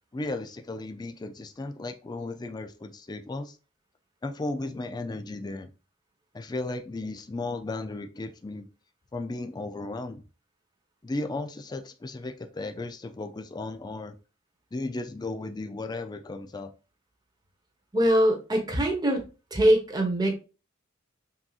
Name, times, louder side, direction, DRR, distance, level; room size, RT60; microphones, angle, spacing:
voice 1, 0.1-3.6 4.2-5.7 6.3-8.7 9.1-10.2 11.0-14.2 14.7-16.7, left 2 dB, 20° left, 6 dB, 0.4 m, -35 dB
voice 2, 17.9-19.2 19.5-20.3, right 1 dB, 20° right, 1 dB, 1.0 m, -22 dB
6.0 x 2.8 x 2.4 m, 0.32 s
head